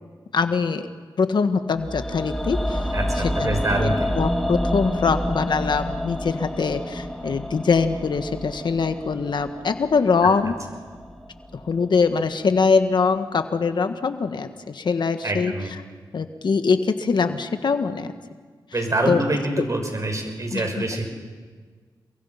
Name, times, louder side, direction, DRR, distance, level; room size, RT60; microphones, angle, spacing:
voice 1, 0.3-0.9 1.2-2.9 3.2-10.6 11.7-15.5 16.1-18.1 19.1-19.2 19.6-19.7 20.5-20.8, left 5 dB, 70° left, 8 dB, 1.5 m, -23 dB
sound 1, 1.8-11.9 12.2-12.3, equal, 5° left, 3.4 m, -29 dB
voice 2, 2.9-4.1 15.2-15.7 18.7-21.1, right 2 dB, 40° right, 4 dB, 6.0 m, -25 dB
29.0 x 22.5 x 5.8 m, 1.5 s
cardioid pair, 60°, 8 cm